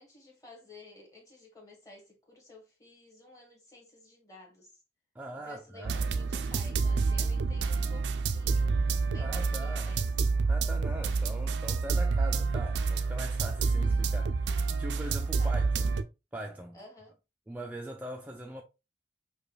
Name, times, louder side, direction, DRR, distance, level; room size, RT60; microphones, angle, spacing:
voice 1, 0.0-4.8 5.4-8.8 9.1-10.1 15.4-15.6 16.7-17.2, left 2 dB, 20° left, 1.3 m, -53 dB
voice 2, 5.2-6.1 9.2-10.1 10.5-15.9 16.3-16.8 17.5-18.6, right 1 dB, 10° right, 0.3 m, -41 dB
sound 1, 5.8-16.0, right 4 dB, 80° right, 0.4 m, -28 dB
5.1 x 2.2 x 2.4 m
head